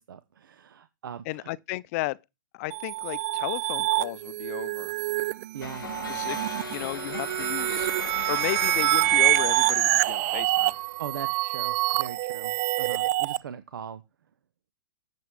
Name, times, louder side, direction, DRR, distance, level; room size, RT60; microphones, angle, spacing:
voice 1, 0.0-1.5 5.5-5.8 11.0-14.0, right 8 dB, 80° right, 0.9 m, -40 dB
voice 2, 1.3-2.2 2.5-4.9 6.1-7.9 8.3-10.7, left 20 dB, 45° left, 0.5 m, -34 dB
sound 1, 2.7-13.4, right 17 dB, 45° right, 0.5 m, -26 dB
sound 2, 5.6-11.1, left 8 dB, 90° left, 0.5 m, -39 dB
8.0 x 7.3 x 4.8 m
hypercardioid pair, 135°, 11 cm